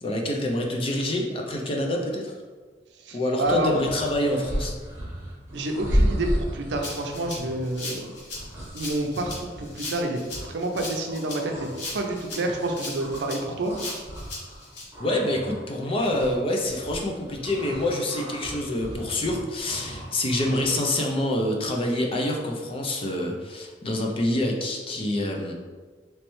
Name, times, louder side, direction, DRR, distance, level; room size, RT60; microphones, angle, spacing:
voice 1, 0.0-2.3 3.1-4.7 15.0-25.5, left 1 dB, 30° left, 1 dB, 0.5 m, -26 dB
voice 2, 3.0-3.8 5.5-8.1 8.7-13.8, right 1 dB, 80° right, 3 dB, 0.5 m, -28 dB
sound 1, 3.4-13.4 13.7-21.0, equal, 15° right, 0.9 m, -33 dB
Rattle (instrument), 6.8-14.8, left 2 dB, 75° left, 1.0 m, -37 dB
3.2 x 3.1 x 3.0 m, 1.4 s
head